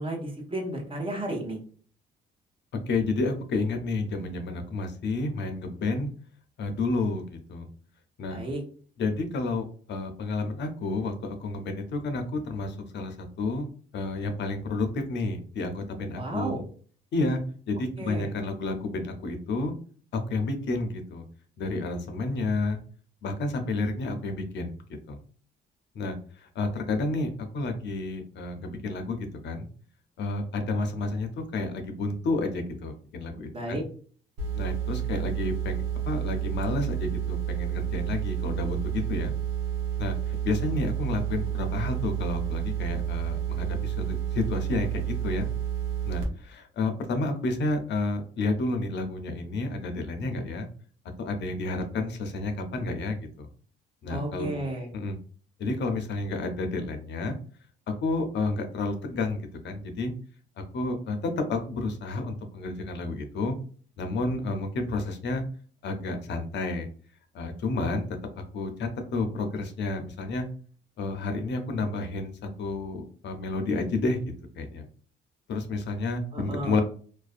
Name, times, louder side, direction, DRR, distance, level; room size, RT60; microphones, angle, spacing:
voice 1, 0.0-1.6 8.3-8.6 16.2-16.6 18.0-18.3 33.5-33.8 54.1-54.9 76.3-76.8, right 1 dB, 25° right, 1 dB, 0.8 m, -33 dB
voice 2, 2.9-6.1 6.6-7.7 8.2-8.4 9.0-13.7 13.9-16.6 17.1-17.4 17.7-19.7 20.1-21.2 21.6-22.8 23.2-24.7 25.1-25.2 25.9-29.7 30.2-33.9 34.5-39.3 40.0-45.5 46.0-50.7 51.2-53.5 54.0-54.6 54.9-55.2 55.6-57.4 58.0-59.4 59.6-60.1 60.7-63.6 64.0-65.4 65.8-66.9 67.3-68.1 68.5-70.5 71.0-72.3 72.6-74.2 74.6-74.9 75.5-76.8, left 3 dB, 65° left, 6 dB, 0.5 m, -30 dB
sound 1, 34.4-46.2, right 10 dB, 80° right, 0.8 m, -30 dB
2.4 x 2.1 x 2.4 m, 0.44 s
cardioid pair, 90°, 20 cm